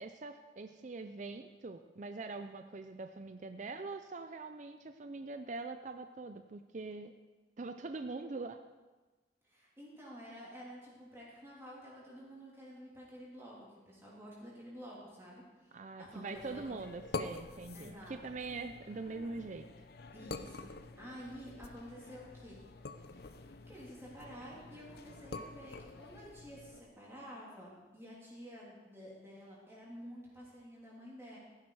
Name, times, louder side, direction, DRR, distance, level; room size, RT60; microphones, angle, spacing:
voice 1, 0.0-7.1 7.6-8.6 15.7-19.6, right 3 dB, 40° right, 8 dB, 0.5 m, -43 dB
voice 2, 9.4-16.8 17.7-18.2 20.1-20.7 21.0-22.6 23.7-31.4, equal, 15° right, -6 dB, 3.1 m, -50 dB
sound 1, 16.4-26.8, left 3 dB, 55° left, 0.7 m, -47 dB
15.5 x 10.5 x 4.8 m, 1.2 s
head